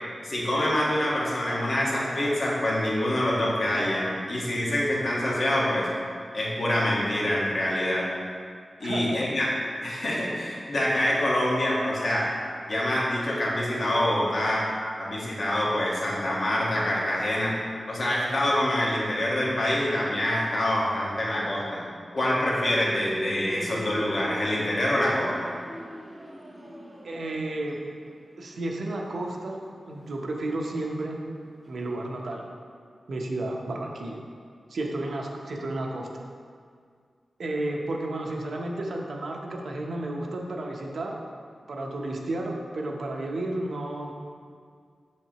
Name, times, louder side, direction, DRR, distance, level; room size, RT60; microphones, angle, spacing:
voice 1, 0.2-5.9 6.3-8.1 8.8-9.5 9.8-12.3 12.7-14.7 15.0-17.6 17.9-21.8 22.1-25.5, left 1 dB, 55° left, -5 dB, 1.6 m, -26 dB
voice 2, 8.8-9.3 27.0-27.8 28.4-29.6 29.9-31.2 31.7-32.5 33.1-34.2 34.7-36.1 37.4-41.2 41.7-44.1, right 2 dB, 70° right, 0 dB, 0.9 m, -32 dB
sound 1, 22.6-31.7 32.0-32.3, equal, 20° right, 0.9 m, -40 dB
7.5 x 6.6 x 3.0 m, 2.1 s
wide cardioid pair, 110°, 0 cm